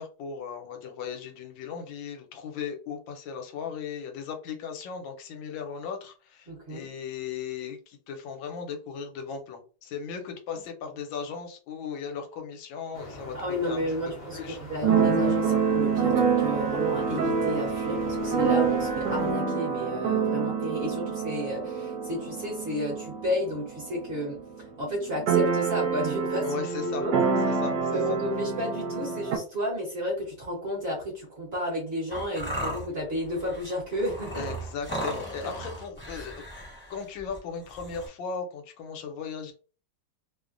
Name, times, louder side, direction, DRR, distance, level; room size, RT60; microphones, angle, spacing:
voice 1, 0.0-13.8 14.3-14.6 15.4-15.6 26.4-27.1 27.5-28.2 34.3-36.4 36.9-39.5, left 6 dB, 80° left, 4 dB, 1.4 m, -37 dB
voice 2, 6.5-6.9 13.3-24.4 24.8-27.2 27.7-34.5, equal, 40° right, -3 dB, 1.0 m, -32 dB
sound 1, 12.9-19.3, left 1 dB, 55° left, 0.9 m, -42 dB
Keyboard (musical), 14.8-24.4 24.6-24.7 24.9-29.4, right 5 dB, 70° right, 1.2 m, -26 dB
sound 2, 32.1-38.1, right 1 dB, 10° left, 0.7 m, -37 dB
3.1 x 2.1 x 2.4 m, 0.36 s
omnidirectional pair, 2.1 m